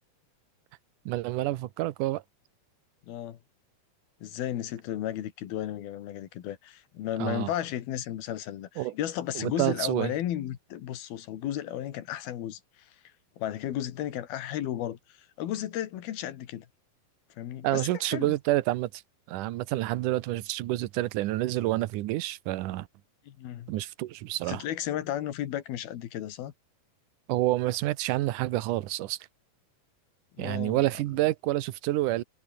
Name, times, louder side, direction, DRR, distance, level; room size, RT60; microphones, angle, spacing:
voice 1, 1.1-2.2 7.2-7.5 8.8-8.9 9.4-10.1 17.6-19.0 19.3-22.9 23.7-24.6 27.3-29.2 30.4-32.2, right 16 dB, 70° right, 2.2 m, -28 dB
voice 2, 3.1-3.4 4.2-12.6 13.4-15.0 15.4-16.7 17.4-18.4 23.3-23.7 24.5-26.5 30.4-30.8, left 12 dB, 85° left, 3.6 m, -34 dB
omnidirectional pair, 4.3 m